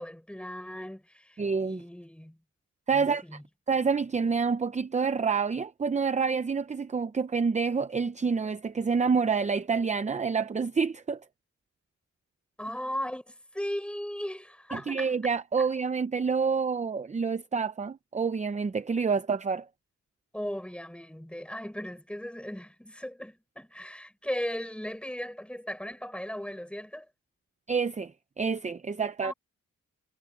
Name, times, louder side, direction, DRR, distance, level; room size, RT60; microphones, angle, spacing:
voice 1, 0.0-2.4 2.9-3.4 12.6-15.1 15.6-15.7 20.3-27.1 29.2-29.3, equal, 5° left, 6.3 m, -37 dB
voice 2, 1.4-1.8 2.9-3.2 3.7-11.2 14.7-19.7 27.7-29.3, right 5 dB, 25° right, 0.6 m, -28 dB
wide cardioid pair, 145°, 30 cm